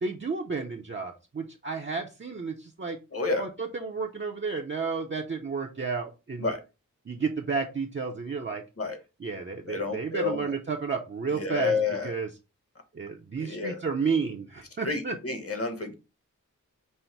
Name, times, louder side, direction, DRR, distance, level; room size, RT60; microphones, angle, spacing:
voice 1, 0.0-3.0 3.4-6.5 7.1-8.6 9.2-11.7 12.0-12.3 12.9-15.2, right 5 dB, 35° right, 1 dB, 0.6 m, -31 dB
voice 2, 3.1-3.5 6.4-6.6 8.8-9.0 9.6-10.5 11.3-12.1 13.4-13.8 14.8-15.9, left 4 dB, 45° left, 6 dB, 1.2 m, -30 dB
5.5 x 2.1 x 4.4 m, 0.28 s
wide cardioid pair, 85°, 32 cm